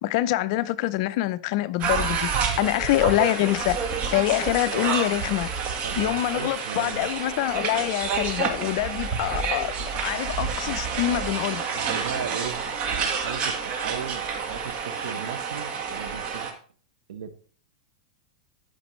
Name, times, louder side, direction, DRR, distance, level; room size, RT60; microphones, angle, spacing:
voice 1, 0.0-3.8 4.1-5.5 6.0-11.6, left 16 dB, 55° left, 0.5 m, -25 dB
sound 1, 1.8-16.5, right 6 dB, 35° right, 1.4 m, -29 dB
sound 2, 2.6-6.5, left 4 dB, 5° left, 1.1 m, -42 dB
voice 2, 4.7-5.1 5.8-7.1 11.0-11.3 11.7-16.5 17.1-17.4, right 7 dB, 85° right, 1.0 m, -37 dB
13.0 x 5.2 x 3.1 m
supercardioid pair, 140°, 4 cm